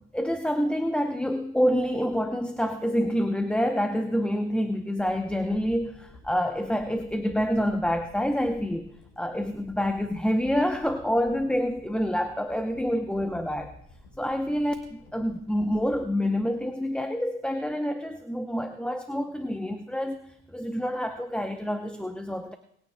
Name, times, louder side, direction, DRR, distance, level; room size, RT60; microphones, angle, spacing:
voice 1, 0.0-8.9 9.2-13.7 14.2-22.6, equal, 5° left, 7 dB, 0.8 m, -27 dB
sound 1, 5.0-17.2 17.7-17.8, left 2 dB, 85° left, 4.4 m, -52 dB
27.5 x 9.2 x 2.3 m, 0.70 s
supercardioid pair, 65°, 32 cm